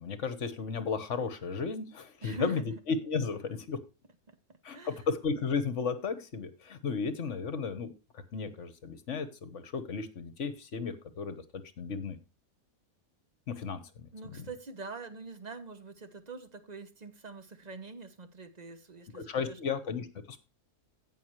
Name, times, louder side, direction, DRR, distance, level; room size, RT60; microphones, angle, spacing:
voice 1, 0.0-3.8 4.6-11.4 11.8-12.2 13.5-14.5 19.1-20.4, left 5 dB, 55° left, 1.4 m, -34 dB
voice 2, 2.2-2.8 4.3-5.0 14.1-19.6, right 3 dB, 30° right, 0.9 m, -44 dB
16.5 x 5.8 x 3.1 m
omnidirectional pair, 1.6 m